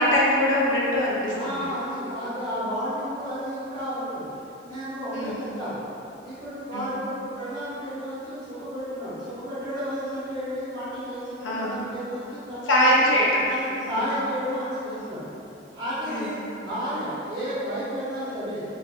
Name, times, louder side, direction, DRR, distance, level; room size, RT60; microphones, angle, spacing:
voice 1, 0.0-1.5 5.1-5.5 6.7-6.9 11.4-11.8 12.7-13.4 13.9-14.0 16.1-16.3, equal, 90° left, -5 dB, 0.6 m, -22 dB
voice 2, 1.3-5.8 6.2-13.0 13.5-15.3 15.7-18.6, equal, 40° right, -16 dB, 1.4 m, -32 dB
4.5 x 3.6 x 2.4 m, 2.8 s
head